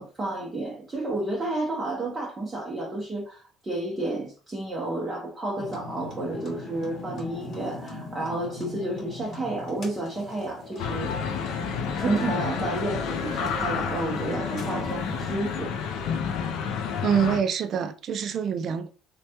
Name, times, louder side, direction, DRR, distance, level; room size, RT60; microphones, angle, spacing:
voice 1, 0.0-11.1 12.0-15.7, right 2 dB, 15° right, 0.7 m, -31 dB
sound 1, 5.6-15.4, left 2 dB, 40° left, 0.9 m, -39 dB
sound 2, 10.8-17.4, left 6 dB, 85° left, 0.3 m, -30 dB
voice 2, 17.0-18.9, right 7 dB, 45° right, 0.3 m, -25 dB
3.2 x 2.1 x 2.8 m
cardioid pair, 145°, 0 cm